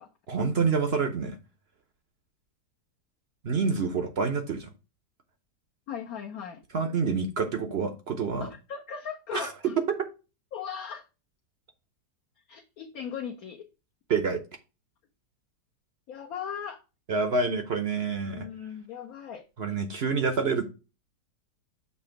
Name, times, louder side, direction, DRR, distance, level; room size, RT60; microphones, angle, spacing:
voice 1, 0.3-1.4 3.4-4.7 6.7-8.5 9.3-9.5 9.9-10.0 14.1-14.4 17.1-18.5 19.6-20.7, right 5 dB, 50° right, 0.8 m, -27 dB
voice 2, 5.9-6.6 8.4-9.7 10.5-11.1 12.5-13.6 16.1-16.8 18.2-19.5, left 7 dB, 65° left, 1.2 m, -38 dB
7.0 x 2.9 x 5.7 m
omnidirectional pair, 1.8 m